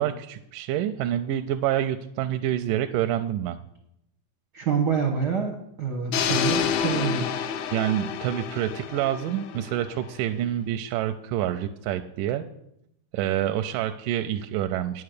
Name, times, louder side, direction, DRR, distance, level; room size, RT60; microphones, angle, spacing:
voice 1, 0.0-3.6 7.7-12.5 13.1-15.0, right 11 dB, 85° right, 7 dB, 2.2 m, -27 dB
voice 2, 4.5-7.4, right 6 dB, 65° right, 2 dB, 1.0 m, -27 dB
sound 1, 6.1-10.1, left 8 dB, 75° left, 2.1 m, -28 dB
9.5 x 9.2 x 6.6 m, 0.78 s
omnidirectional pair, 3.7 m